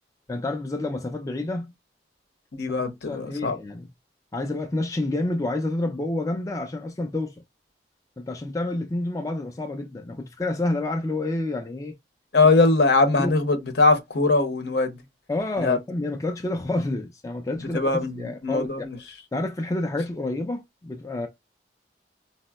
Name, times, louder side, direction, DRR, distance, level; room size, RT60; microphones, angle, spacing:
voice 1, 0.3-1.7 3.0-3.9 4.3-7.4 8.2-12.0 13.2-13.3 15.3-18.7 19.3-21.3, left 2 dB, 20° left, 0.3 m, -29 dB
voice 2, 2.5-3.6 12.3-15.0 15.6-15.8 17.7-19.0, left 3 dB, 65° left, 0.7 m, -21 dB
4.2 x 2.0 x 2.3 m
head